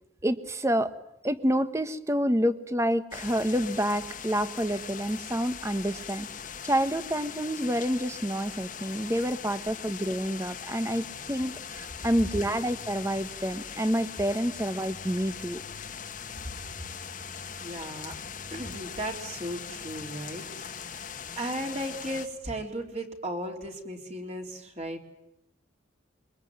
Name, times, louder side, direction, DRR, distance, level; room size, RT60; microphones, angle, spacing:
voice 1, 0.2-0.9 1.2-6.3 6.6-15.6, equal, 15° right, 11 dB, 1.3 m, -28 dB
sound 1, 3.1-22.3, left 7 dB, 45° left, 1.5 m, -41 dB
voice 2, 17.6-18.2 18.5-21.0 21.4-25.0, right 1 dB, 35° right, 2 dB, 3.8 m, -36 dB
26.5 x 23.5 x 9.5 m, 0.83 s
head